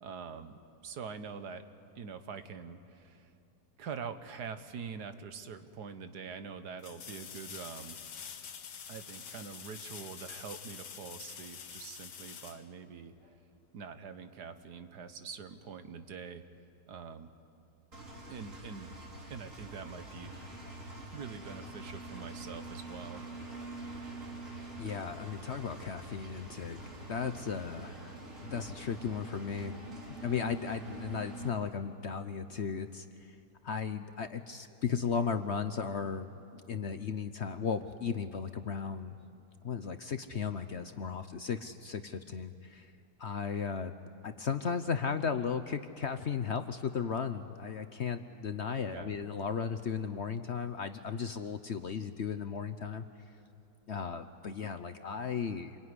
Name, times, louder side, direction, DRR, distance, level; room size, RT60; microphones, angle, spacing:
voice 1, 0.0-0.5 0.8-1.6 2.0-3.3 3.8-8.0 8.9-13.1 13.7-16.4 16.9-17.3 18.3-19.0 19.3-20.3 21.1-23.3 48.9-49.2, right 6 dB, 75° right, 9 dB, 1.7 m, -44 dB
sound 1, 5.4-5.5 6.8-13.4 16.3-16.4, left 7 dB, 75° left, 1.7 m, -47 dB
Engine, 17.9-31.5, right 2 dB, 50° right, 4.1 m, -45 dB
voice 2, 24.5-26.8 27.1-29.8 30.2-33.4 33.6-39.1 39.6-42.9 43.2-43.9 44.2-53.0 53.9-55.8, left 6 dB, 55° left, 9 dB, 0.9 m, -35 dB
27.5 x 22.0 x 9.8 m, 2.6 s
omnidirectional pair, 1.8 m